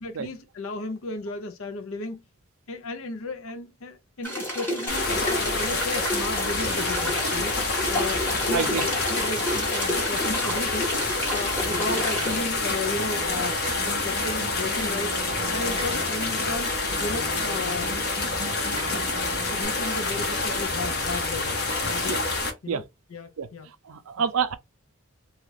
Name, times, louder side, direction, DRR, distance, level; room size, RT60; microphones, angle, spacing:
voice 1, 0.0-2.2 2.7-7.5 7.9-10.9 11.3-13.6 13.8-15.2 15.5-16.7 17.0-18.1 19.5-21.6 21.8-22.2 22.6-22.8 23.1-23.7, left 2 dB, 70° left, 0.6 m, -34 dB
sound 1, 4.2-12.4, equal, 10° left, 1.1 m, -30 dB
sound 2, 4.9-22.5, left 3 dB, 50° left, 0.9 m, -27 dB
voice 2, 8.5-8.8 22.1-22.2 22.7-22.8 23.4-23.5 23.9-24.5, right 6 dB, 75° right, 0.5 m, -27 dB
Acoustic guitar, 11.7-19.6, right 1 dB, 25° right, 0.6 m, -40 dB
2.8 x 2.4 x 3.2 m
head